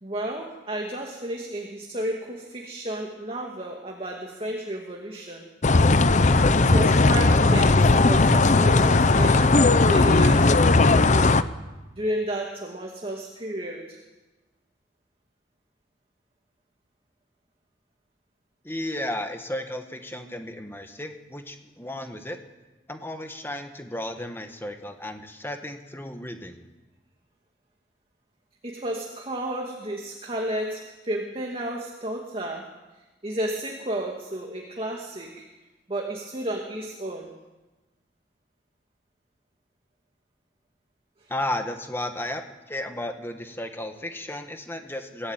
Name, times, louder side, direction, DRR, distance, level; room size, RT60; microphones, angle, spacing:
voice 1, 0.0-5.4 6.6-11.4 11.9-14.0 28.6-32.7 33.2-35.5 35.9-37.3 41.2-41.3, right 1 dB, 30° right, 0 dB, 2.4 m, -32 dB
sound 1, 5.6-11.4, left 3 dB, 40° left, 0.7 m, -17 dB
voice 2, 18.6-22.4 22.9-26.7 41.3-45.3, left 1 dB, 10° left, 6 dB, 1.6 m, -34 dB
23.5 x 16.0 x 9.1 m, 1.1 s
head